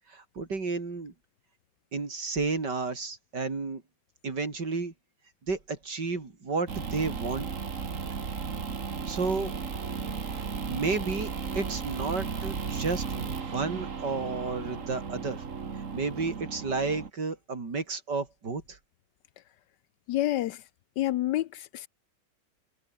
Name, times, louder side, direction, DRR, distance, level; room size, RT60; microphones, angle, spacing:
voice 1, 0.1-1.1 1.9-3.8 4.2-4.9 5.5-7.5 9.1-9.5 10.7-11.3 11.5-15.4 15.9-18.8, right 4 dB, 65° right, 4.2 m, -32 dB
sound 1, 6.7-17.1, right 5 dB, 45° right, 2.1 m, -35 dB
voice 2, 20.1-20.6 21.0-21.9, left 14 dB, 70° left, 1.1 m, -28 dB
omnidirectional pair, 2.0 m